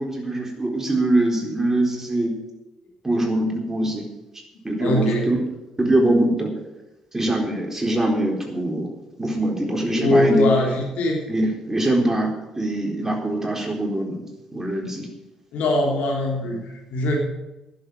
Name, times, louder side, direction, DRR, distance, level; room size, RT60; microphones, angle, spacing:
voice 1, 0.0-2.3 3.0-4.0 4.6-5.4 5.8-6.5 7.1-8.9 9.2-10.5 11.3-14.2 14.5-15.1, right 1 dB, 15° right, 1 dB, 4.0 m, -23 dB
voice 2, 4.8-5.3 10.0-11.2 13.0-13.1 15.5-17.2, left 1 dB, 70° left, 0 dB, 3.3 m, -21 dB
11.0 x 7.7 x 9.1 m, 0.98 s
hypercardioid pair, 50°, 2 cm